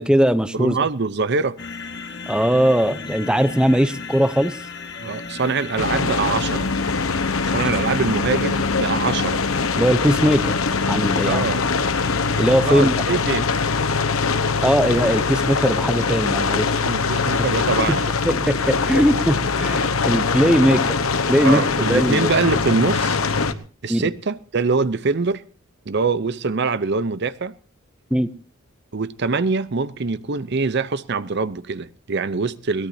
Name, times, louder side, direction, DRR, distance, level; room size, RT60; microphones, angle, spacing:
voice 1, 0.0-0.8 2.3-4.5 9.8-10.6 10.9-11.4 12.4-12.9 14.6-16.7 18.2-19.3 19.6-20.8 21.3-22.3 23.9-24.0 28.1-28.3, equal, 5° right, 0.7 m, -19 dB
voice 2, 0.5-1.6 5.0-6.7 7.4-9.4 11.2-11.7 12.7-13.6 16.8-18.1 19.6-19.7 21.4-23.2 23.8-25.4 25.9-27.5 28.9-32.9, right 4 dB, 55° right, 0.7 m, -23 dB
sound 1, 1.6-12.6, left 4 dB, 55° left, 1.5 m, -35 dB
sound 2, 5.8-23.5, left 4 dB, 85° left, 1.1 m, -22 dB
22.0 x 17.5 x 2.7 m
head